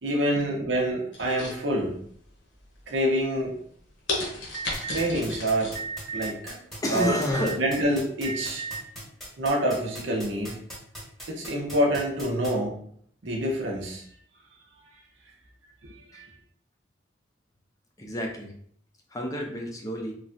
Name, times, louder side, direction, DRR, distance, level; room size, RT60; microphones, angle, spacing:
voice 1, 0.0-2.0 2.9-3.5 4.9-5.8 6.1-6.6 6.9-7.1 7.5-8.6 9.4-10.6 11.3-12.8 13.2-14.0 15.8-16.3, right 1 dB, 85° right, -1 dB, 0.7 m, -27 dB
open close small bottle, 1.1-2.1 2.6-3.0 3.5-3.6 4.1-5.8 6.1-6.2, left 2 dB, 90° left, 0.9 m, -33 dB
Alarm, 4.5-5.1 5.7-6.3 7.0-7.6 8.2-8.8, right 4 dB, 40° right, 0.3 m, -34 dB
sound 1, 4.7-12.5, equal, ahead, 1.0 m, -39 dB
voice 2, 6.8-7.6 16.1-16.2 18.0-18.5 19.1-20.1, left 1 dB, 20° left, 1 dB, 0.5 m, -29 dB
3.2 x 2.3 x 2.5 m, 0.63 s
head